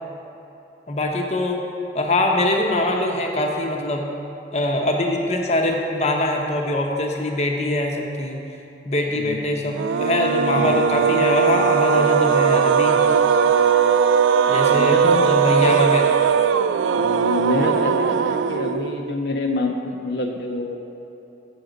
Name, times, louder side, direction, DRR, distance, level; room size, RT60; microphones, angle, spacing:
voice 1, 0.9-1.6 1.9-4.0 4.5-8.4 8.8-13.1 14.5-15.0 15.2-16.1, left 1 dB, 35° left, 1 dB, 0.8 m, -22 dB
sound 1, 9.7-19.1, right 7 dB, 90° right, 0.3 m, -19 dB
voice 2, 14.7-15.4 16.9-20.8, left 2 dB, 65° left, 1 dB, 0.6 m, -26 dB
7.8 x 6.8 x 5.0 m, 2.9 s
head